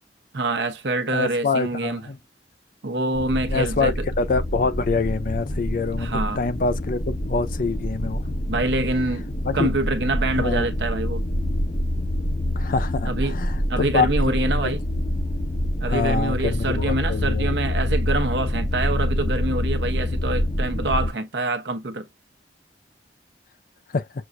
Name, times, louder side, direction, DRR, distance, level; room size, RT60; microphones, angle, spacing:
voice 1, 0.3-2.0 2.8-4.0 6.0-6.4 8.5-9.2 9.5-11.2 13.0-13.4 13.7-14.8 15.8-22.1, right 2 dB, 70° right, 0.9 m, -26 dB
voice 2, 1.1-2.2 3.5-8.2 9.4-9.7 10.4-10.7 12.6-14.1 14.5-14.6 15.9-17.6 23.9-24.1, left 4 dB, 50° left, 0.5 m, -25 dB
sound 1, 3.1-21.1, left 1 dB, 35° left, 0.8 m, -26 dB
6.2 x 2.6 x 2.2 m
head